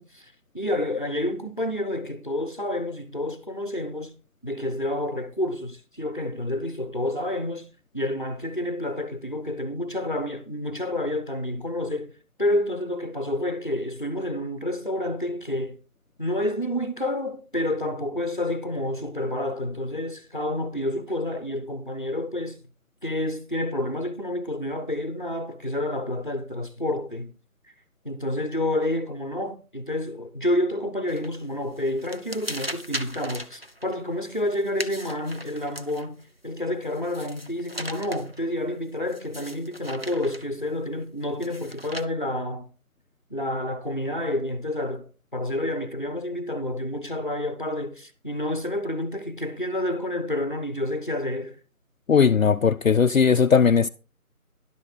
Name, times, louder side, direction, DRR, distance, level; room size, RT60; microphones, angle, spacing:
voice 1, 0.0-4.1 4.4-7.7 7.9-12.1 12.4-15.8 16.2-22.6 23.0-27.3 28.0-36.2 36.4-42.7 43.3-51.6, left 1 dB, 35° left, 0.8 m, -29 dB
sound 1, 31.1-31.4 31.8-36.2 36.8-38.4 39.1-40.6 41.4-42.0, equal, 45° right, 0.6 m, -38 dB
voice 2, 52.1-53.9, left 6 dB, 65° left, 0.5 m, -18 dB
11.5 x 6.2 x 4.8 m
figure-of-eight pair, 175°, 43 cm